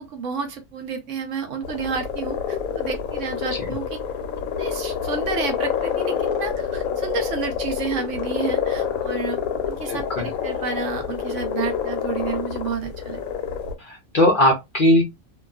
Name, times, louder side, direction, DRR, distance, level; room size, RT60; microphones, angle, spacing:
voice 1, 0.0-4.0 4.6-9.4 9.7-13.2, right 5 dB, 65° right, 0.9 m, -30 dB
sound 1, 1.6-13.7, left 7 dB, 80° left, 1.1 m, -27 dB
voice 2, 9.9-10.3 13.8-15.0, left 1 dB, 50° left, 0.6 m, -19 dB
2.6 x 2.3 x 2.3 m
omnidirectional pair, 1.5 m